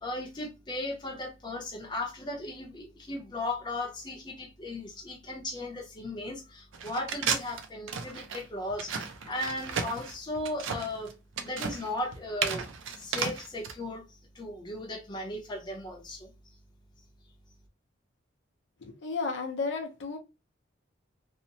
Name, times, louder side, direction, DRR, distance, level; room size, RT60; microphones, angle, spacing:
voice 1, 0.0-11.1 11.4-12.6 13.0-14.0 14.4-16.3, left 1 dB, 25° left, 0.6 m, -36 dB
sound 1, 6.7-13.7, right 6 dB, 80° right, 0.5 m, -33 dB
voice 2, 18.8-20.2, left 4 dB, 65° left, 0.5 m, -33 dB
2.8 x 2.1 x 2.6 m
head